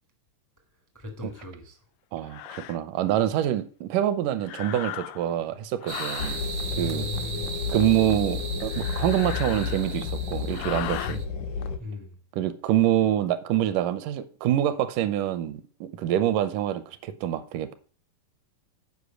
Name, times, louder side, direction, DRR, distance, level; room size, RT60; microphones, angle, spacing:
voice 1, 0.9-1.8 6.7-7.5 11.0-11.2 11.8-12.2, left 3 dB, 15° left, 0.5 m, -37 dB
sound 1, 1.4-1.5 2.3-2.8 4.4-5.4 5.8-6.4 8.6-10.1 10.5-11.2, left 14 dB, 85° left, 1.6 m, -37 dB
voice 2, 2.1-6.4 6.8-7.1 7.7-11.2 12.3-17.7, right 11 dB, 80° right, 2.2 m, -26 dB
sound 2, 5.9-11.2, right 5 dB, 65° right, 1.2 m, -38 dB
sound 3, 6.2-11.8, left 5 dB, 65° left, 1.8 m, -31 dB
8.3 x 5.3 x 6.4 m
omnidirectional pair, 3.9 m